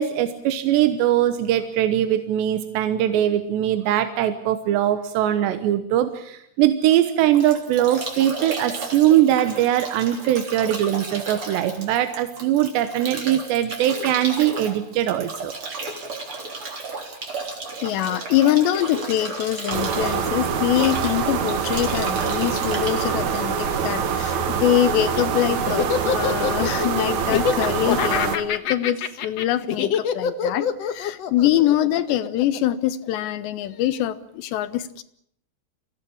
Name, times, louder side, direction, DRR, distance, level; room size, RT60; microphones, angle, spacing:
voice 1, 0.0-15.5, right 12 dB, 90° right, 9 dB, 3.4 m, -21 dB
Bathtub (filling or washing) / Drip / Trickle dribble, 6.9-24.1, right 3 dB, 35° right, 4.0 m, -34 dB
voice 2, 17.8-35.0, left 12 dB, 90° left, 13 dB, 3.3 m, -24 dB
sound 1, 19.7-28.4, right 7 dB, 55° right, 2.4 m, -25 dB
Laughter, 24.8-33.3, left 8 dB, 65° left, 1.6 m, -25 dB
26.0 x 16.5 x 8.7 m, 0.71 s
omnidirectional pair, 4.8 m